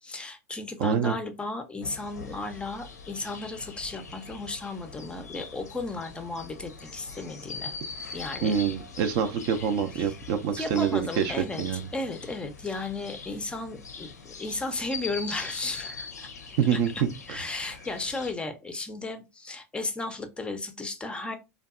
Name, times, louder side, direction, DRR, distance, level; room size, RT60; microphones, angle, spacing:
voice 1, 0.0-7.7 8.1-8.5 10.0-10.1 10.5-16.3 16.7-21.4, left 2 dB, 10° left, 0.4 m, -35 dB
voice 2, 0.8-1.1 8.4-11.8 16.6-16.9 17.3-17.4, right 8 dB, 55° right, 0.4 m, -26 dB
sound 1, 1.8-18.3, left 5 dB, 90° left, 0.4 m, -42 dB
2.6 x 2.3 x 2.3 m
hypercardioid pair, 90°, 9 cm